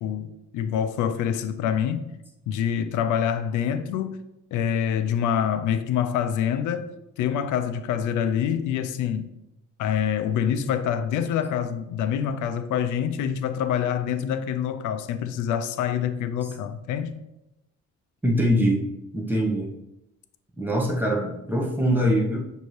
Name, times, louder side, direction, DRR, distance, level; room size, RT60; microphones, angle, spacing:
voice 1, 0.0-2.1 2.5-4.2 4.5-6.9 7.2-9.3 9.8-17.1, left 8 dB, 85° left, 0.5 m, -26 dB
voice 2, 18.2-18.8 19.1-19.7 20.6-22.4, equal, 5° right, 0.8 m, -23 dB
6.3 x 2.7 x 3.1 m
cardioid pair, 90°, 30 cm